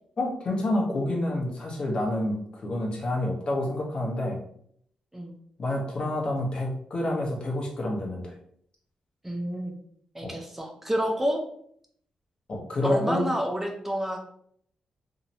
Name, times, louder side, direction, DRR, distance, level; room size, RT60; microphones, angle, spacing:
voice 1, 0.2-4.4 5.6-8.3 10.2-10.3 12.5-13.3, left 1 dB, 45° left, -1 dB, 0.7 m, -28 dB
voice 2, 9.2-9.8 10.1-11.4 12.8-14.2, equal, 10° right, 2 dB, 0.3 m, -29 dB
2.6 x 2.0 x 2.6 m, 0.66 s
cardioid pair, 105°, 2 cm